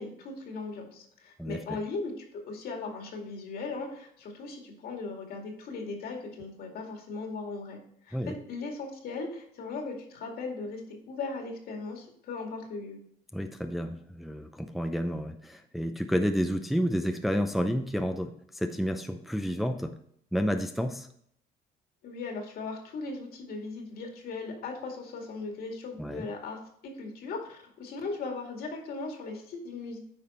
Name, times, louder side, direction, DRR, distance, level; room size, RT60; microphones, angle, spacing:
voice 1, 0.0-13.0 22.0-30.0, left 3 dB, 65° left, 2 dB, 2.2 m, -38 dB
voice 2, 13.3-19.9 20.3-21.1 26.0-26.3, equal, ahead, 6 dB, 0.6 m, -30 dB
9.1 x 5.1 x 4.3 m, 0.68 s
cardioid pair, 110°, 17 cm